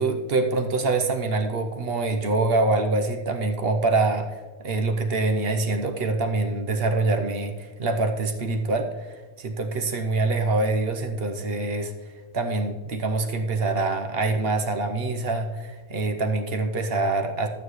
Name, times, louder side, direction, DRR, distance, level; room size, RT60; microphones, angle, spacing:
voice 1, 0.0-11.9 12.3-17.5, right 3 dB, 55° right, 5 dB, 1.0 m, -25 dB
11.5 x 9.1 x 3.1 m, 1.3 s
omnidirectional pair, 1.3 m